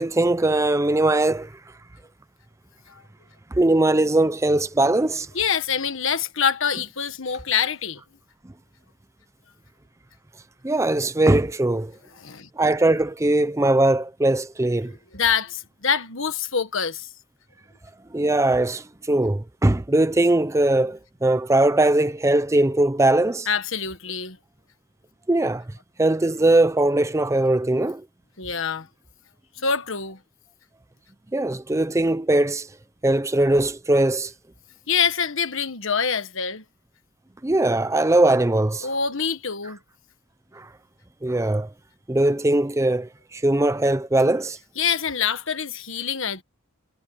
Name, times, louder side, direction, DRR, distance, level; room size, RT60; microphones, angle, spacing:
voice 1, 0.0-1.5 3.5-5.3 6.8-6.9 10.6-11.9 12.6-14.9 18.1-23.5 25.3-25.6 26.0-28.0 31.3-32.7 33.0-34.3 37.4-38.9 40.5-40.7 41.2-41.7 42.1-44.6, right 2 dB, 15° right, 0.5 m, -20 dB
voice 2, 5.3-8.0 12.2-12.5 15.1-17.1 23.5-24.4 28.4-28.9 29.6-30.2 34.9-36.6 38.8-39.8 44.8-46.4, left 6 dB, 60° left, 1.6 m, -25 dB
head